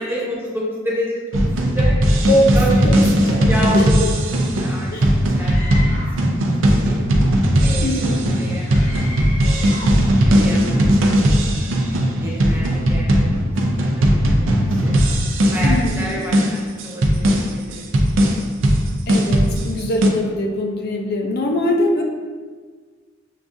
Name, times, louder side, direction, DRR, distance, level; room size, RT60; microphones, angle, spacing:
voice 1, 0.0-5.8 6.2-6.3 6.6-7.0 7.6-8.7 9.2-11.6 12.2-13.4 13.7-14.3 14.7-15.0 15.5-17.8, equal, 10° right, -5 dB, 0.8 m, -30 dB
sound 1, 1.3-20.1, equal, 80° right, 0.5 m, -17 dB
voice 2, 2.8-3.4 3.7-3.9 4.9-5.2 7.8-8.3 15.6-16.2 19.1-22.0, left 1 dB, 55° left, 1 dB, 0.4 m, -22 dB
Screaming, 5.4-6.3 8.7-10.0, left 1 dB, 40° left, 0.8 m, -34 dB
6.4 x 2.4 x 2.6 m, 1.5 s
head